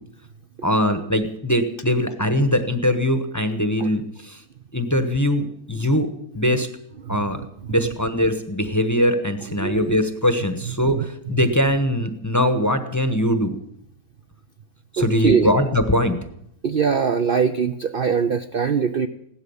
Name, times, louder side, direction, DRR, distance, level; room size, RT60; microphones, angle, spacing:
voice 1, 0.6-4.4 4.7-6.1 6.3-6.7 7.1-7.4 7.7-13.6 14.9-16.2, equal, 15° left, 9 dB, 0.9 m, -21 dB
voice 2, 9.6-10.0 11.0-11.1 15.0-15.5 16.6-19.1, right 6 dB, 50° right, 7 dB, 0.7 m, -22 dB
16.5 x 12.0 x 7.1 m, 0.74 s
omnidirectional pair, 1.6 m